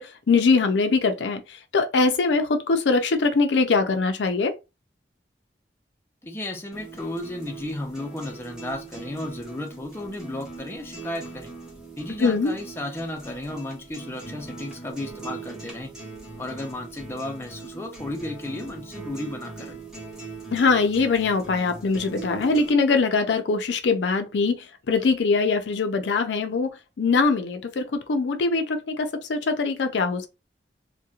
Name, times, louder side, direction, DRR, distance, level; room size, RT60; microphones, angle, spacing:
voice 1, 0.0-4.6 12.2-12.5 20.5-30.3, left 4 dB, 80° left, 0.5 m, -22 dB
voice 2, 6.2-11.5 12.0-15.9 16.4-19.8, left 1 dB, 15° left, 0.5 m, -34 dB
sound 1, 6.7-22.7, right 3 dB, 5° right, 1.0 m, -41 dB
2.8 x 2.2 x 2.3 m
head